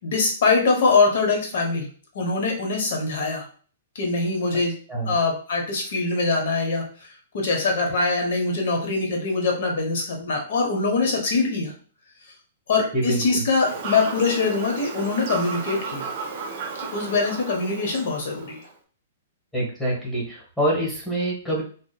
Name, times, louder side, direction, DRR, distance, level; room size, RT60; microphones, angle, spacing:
voice 1, 0.0-1.9 2.1-3.4 3.9-4.8 5.1-6.8 7.3-11.7 12.7-16.1 16.9-18.6, left 3 dB, 65° left, 1 dB, 0.9 m, -23 dB
voice 2, 12.9-13.4 19.5-21.6, right 1 dB, ahead, -5 dB, 1.1 m, -26 dB
Fowl / Bird vocalization bird call bird song, 13.6-18.6, right 5 dB, 45° right, 0.6 m, -34 dB
2.6 x 2.1 x 2.3 m, 0.43 s
hypercardioid pair, 145°, 0 cm